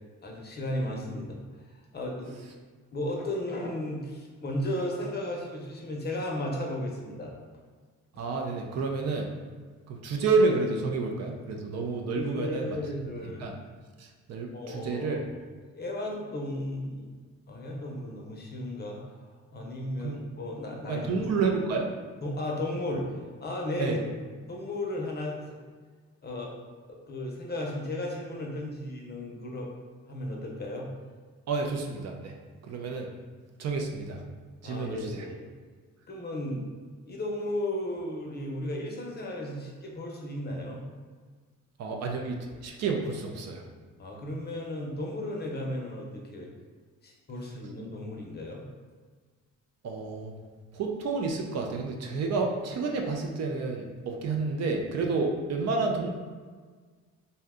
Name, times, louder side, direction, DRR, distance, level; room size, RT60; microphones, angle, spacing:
voice 1, 0.2-1.4 1.9-2.3 2.9-7.3 8.1-8.2 12.2-13.5 14.5-15.1 15.7-17.2 17.5-19.3 19.5-21.0 22.2-23.1 23.4-24.0 24.5-25.4 26.2-26.5 26.9-29.7 30.1-30.9 34.6-35.5 36.1-36.7 37.0-40.8 44.0-46.5 47.0-48.6, left 1 dB, 35° left, -1 dB, 0.6 m, -34 dB
voice 2, 8.2-9.3 9.9-13.5 14.0-15.2 20.0-20.2 20.9-21.9 23.8-24.0 31.5-32.3 32.6-33.1 33.6-34.2 34.6-35.3 41.8-43.6 49.8-50.3 50.7-56.1, right 4 dB, 60° right, 2 dB, 0.5 m, -30 dB
2.7 x 2.1 x 3.5 m, 1.5 s
cardioid pair, 90°, 30 cm